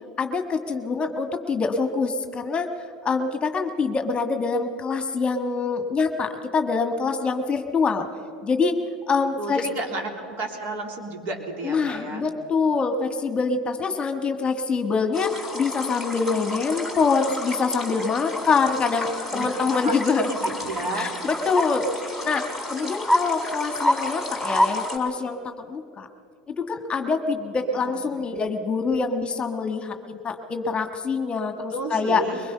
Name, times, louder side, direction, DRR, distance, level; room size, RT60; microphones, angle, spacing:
voice 1, 0.2-2.7 3.0-8.1 8.4-8.8 9.1-9.6 11.6-20.3 20.9-21.9 22.2-25.4 25.7-26.1 26.5-32.2, left 4 dB, 25° left, 7 dB, 1.5 m, -25 dB
voice 2, 9.4-12.3 18.4-18.6 19.3-19.5 19.8-20.0 20.3-21.1 27.6-28.0 31.7-32.4, right 2 dB, 50° right, 2 dB, 3.4 m, -32 dB
sound 1, 15.1-25.0, left 1 dB, 10° right, 4.3 m, -29 dB
22.5 x 20.5 x 5.6 m, 2.4 s
hypercardioid pair, 90°, 4 cm